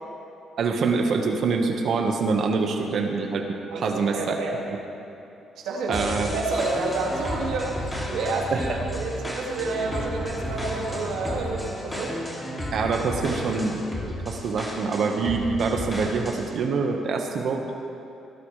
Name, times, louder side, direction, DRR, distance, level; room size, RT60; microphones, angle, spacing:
voice 1, 0.6-3.5 3.7-4.6 5.9-6.3 8.5-8.8 12.7-17.7, right 4 dB, 65° right, 3 dB, 1.4 m, -25 dB
voice 2, 3.7-4.5 5.6-12.1, right 3 dB, 85° right, -2 dB, 2.2 m, -29 dB
sound 1, 5.9-16.6, equal, 15° left, 2.7 m, -33 dB
18.0 x 12.5 x 3.3 m, 2.8 s
cardioid pair, 90°, 0 cm